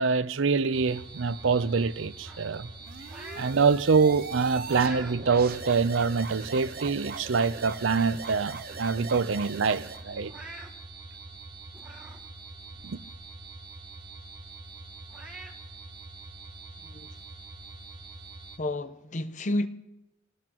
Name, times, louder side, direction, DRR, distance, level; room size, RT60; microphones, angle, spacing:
voice 1, 0.0-2.7 3.4-10.3 12.8-13.0, right 5 dB, 75° right, 0.6 m, -25 dB
sound 1, 0.7-18.6, right 3 dB, 20° right, 1.0 m, -45 dB
sound 2, 2.3-3.5 4.0-5.2 5.7-5.8 6.7-6.8 7.2-7.3 7.6-8.2 8.6-8.7 9.0-9.1 10.1-10.7 11.7-12.2 12.6-12.7 14.4-14.5 15.1-15.5, right 2 dB, 5° right, 1.6 m, -45 dB
sound 3, 2.9-10.0, right 5 dB, 50° right, 0.9 m, -40 dB
voice 2, 16.8-17.2 18.6-19.7, left 1 dB, 40° left, 0.7 m, -31 dB
26.0 x 18.0 x 3.0 m
head